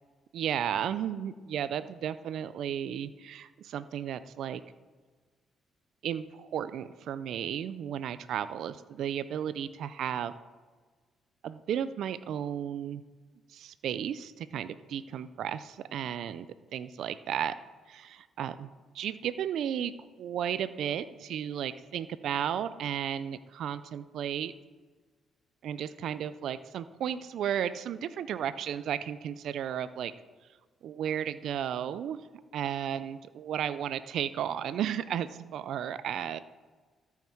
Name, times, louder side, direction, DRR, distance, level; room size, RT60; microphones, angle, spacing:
voice 1, 0.3-4.6 6.0-10.3 11.4-13.0 13.5-16.5 16.7-17.5 17.9-18.7 18.9-19.9 20.2-24.5 25.6-30.1 30.8-32.2 32.5-36.4, right 9 dB, 75° right, 14 dB, 0.4 m, -34 dB
13.5 x 5.8 x 4.5 m, 1.4 s
cardioid pair, 90°, 0 cm